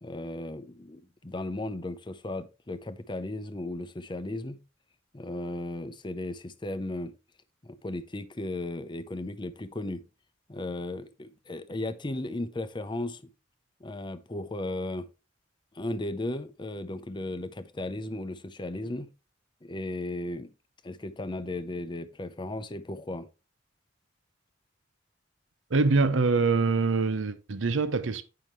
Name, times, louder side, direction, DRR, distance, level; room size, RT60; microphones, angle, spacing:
voice 1, 0.0-4.6 5.1-7.1 7.6-10.0 10.5-13.2 13.8-15.1 15.7-19.1 19.6-20.5 20.8-23.3, left 2 dB, 25° left, 0.7 m, -35 dB
voice 2, 25.7-28.2, right 3 dB, 80° right, 0.7 m, -24 dB
9.1 x 5.7 x 3.2 m
head